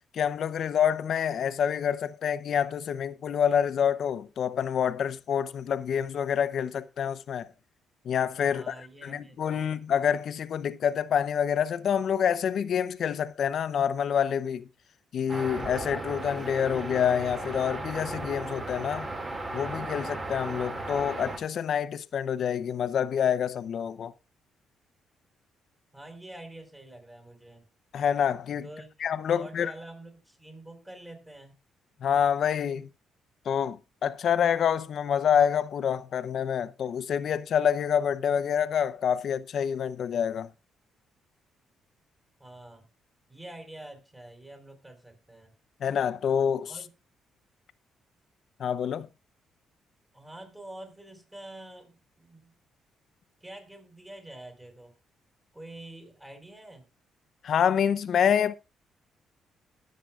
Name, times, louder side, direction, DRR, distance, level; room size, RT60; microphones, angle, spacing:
voice 1, 0.1-7.5 8.1-8.7 9.0-14.6 15.1-19.1 19.5-24.1 27.9-28.7 29.0-29.7 32.0-32.9 33.5-40.5 45.8-46.7 48.6-49.1 57.4-58.5, left 8 dB, 60° left, 0.7 m, -27 dB
voice 2, 8.4-9.8 25.9-27.6 28.6-31.6 42.4-42.8 43.3-45.5 46.7-46.9 50.1-52.5 53.4-54.9 55.5-56.9, right 1 dB, 15° right, 5.0 m, -47 dB
sound 1, 15.3-21.4, right 2 dB, 30° right, 2.3 m, -36 dB
20.5 x 7.6 x 2.4 m
cardioid pair, 90°, 0 cm